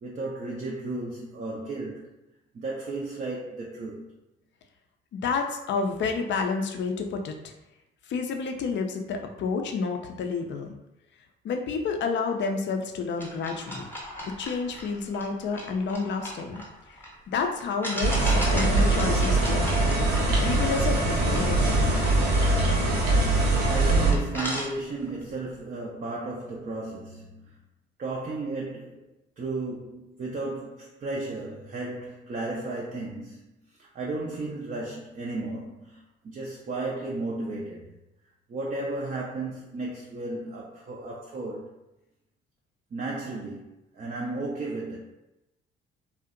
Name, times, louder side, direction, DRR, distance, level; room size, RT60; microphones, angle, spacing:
voice 1, 0.0-2.1 2.5-4.1 23.5-27.6 28.0-29.1 29.4-37.9 38.5-41.7 42.9-43.7 43.9-45.0, right 2 dB, 30° right, -3 dB, 0.5 m, -34 dB
voice 2, 5.1-7.3 8.1-10.7 11.4-13.8 14.2-16.6 16.9-17.0 17.3-19.7 20.4-21.8, left 5 dB, 40° left, 4 dB, 0.4 m, -30 dB
sound 1, 13.2-17.1 17.8-23.4 23.8-23.9 24.1-25.2, equal, 5° left, 0.8 m, -37 dB
sound 2, 18.0-24.1, right 2 dB, 85° right, 0.6 m, -22 dB
2.5 x 2.1 x 2.4 m, 0.93 s
hypercardioid pair, 50°, 29 cm